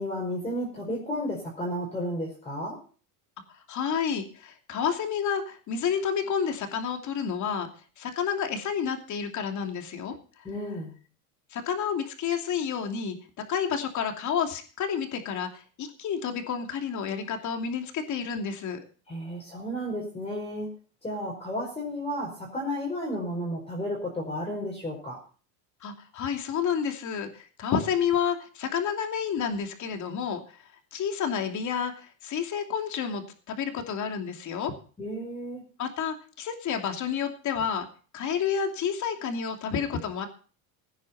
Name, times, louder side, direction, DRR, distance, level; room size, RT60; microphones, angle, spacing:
voice 1, 0.0-2.8 10.4-10.9 19.1-20.7 21.0-25.2 35.0-35.6, equal, 15° left, -2 dB, 4.7 m, -32 dB
voice 2, 3.7-7.7 8.0-10.1 11.5-13.2 13.5-18.8 25.8-30.4 30.9-31.9 32.2-34.7 35.8-37.9 38.1-40.3, left 7 dB, 40° left, 4 dB, 2.9 m, -30 dB
17.0 x 9.6 x 4.3 m, 0.39 s
supercardioid pair, 125°, 44 cm